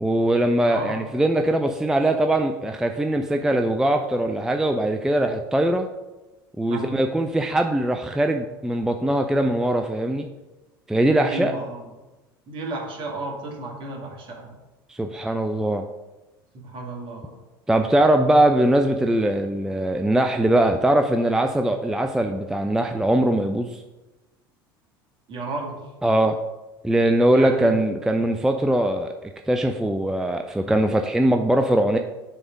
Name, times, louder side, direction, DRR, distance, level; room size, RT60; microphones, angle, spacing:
voice 1, 0.0-5.9 6.6-10.3 10.9-11.5 14.9-15.9 17.7-23.8 26.0-26.4 26.8-32.0, right 1 dB, 5° right, 5 dB, 0.4 m, -21 dB
voice 2, 0.7-1.0 6.7-7.0 11.2-11.9 12.5-14.6 16.5-17.4 25.3-25.8 27.3-27.7, right 2 dB, 45° right, 0 dB, 1.9 m, -33 dB
6.9 x 3.5 x 5.0 m, 1.1 s
hypercardioid pair, 75°, 12 cm